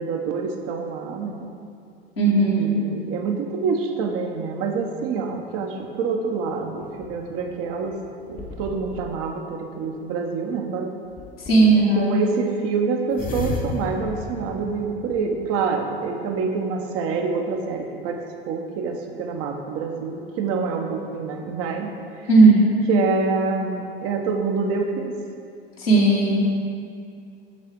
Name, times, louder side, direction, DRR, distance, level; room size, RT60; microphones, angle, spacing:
voice 1, 0.0-1.5 2.6-7.9 8.3-10.9 12.0-18.2 18.4-21.9 22.9-25.1, right 5 dB, 50° right, 3 dB, 0.9 m, -26 dB
voice 2, 2.2-2.7 11.5-12.1 22.3-22.7 25.8-26.3, right 3 dB, 85° left, -6 dB, 1.9 m, -16 dB
sound 1, 6.8-9.2 11.2-11.8 13.1-15.6, left 4 dB, 30° left, 0.9 m, -35 dB
7.6 x 6.6 x 3.6 m, 2.4 s
hypercardioid pair, 75°, 29 cm